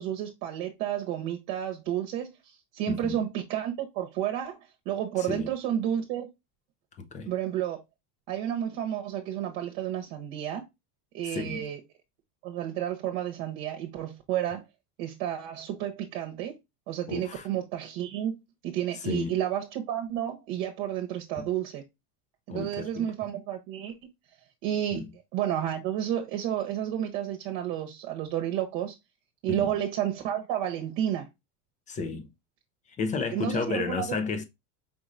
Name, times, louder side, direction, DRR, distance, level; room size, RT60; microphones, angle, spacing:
voice 1, 0.0-4.6 4.9-6.3 7.3-7.8 8.3-10.6 11.1-11.8 12.4-14.6 15.0-16.5 16.9-18.4 18.6-21.8 22.5-23.9 24.6-25.0 25.3-28.9 29.4-31.3 33.3-34.2, right 11 dB, 60° right, 0.9 m, -31 dB
voice 2, 2.9-3.2 5.2-5.5 7.0-7.3 11.2-11.7 17.1-17.5 18.9-19.3 21.4-21.5 22.5-23.1 24.9-25.1 29.5-29.7 31.9-32.3 33.0-34.4, left 4 dB, 20° left, 0.3 m, -32 dB
5.1 x 3.0 x 2.5 m
supercardioid pair, 120°, 47 cm